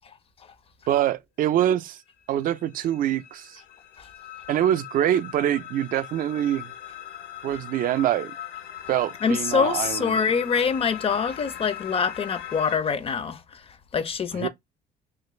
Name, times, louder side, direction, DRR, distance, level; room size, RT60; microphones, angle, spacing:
voice 1, 0.9-2.0 2.3-3.6 4.5-6.7 7.4-8.3 8.9-10.2 14.3-14.5, right 11 dB, 55° right, 0.4 m, -25 dB
sound 1, 2.2-12.8, left 11 dB, 80° left, 0.6 m, -40 dB
voice 2, 9.2-14.5, left 6 dB, 35° left, 0.4 m, -25 dB
3.1 x 2.5 x 3.0 m
cardioid pair, 110°, 17 cm